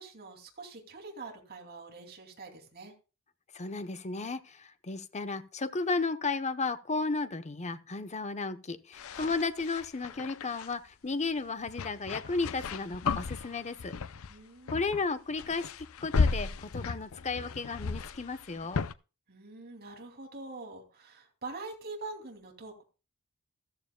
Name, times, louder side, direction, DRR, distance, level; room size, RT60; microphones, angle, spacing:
voice 1, 0.0-2.9 14.3-14.9 19.3-22.8, right 3 dB, 45° right, 2.8 m, -44 dB
voice 2, 3.5-13.9 14.7-15.6 16.0-18.8, left 3 dB, 30° left, 0.9 m, -34 dB
sound 1, 8.9-10.7 11.7-14.4 14.7-15.0 15.3-18.9, left 4 dB, 65° left, 0.6 m, -34 dB
14.5 x 13.5 x 2.3 m
head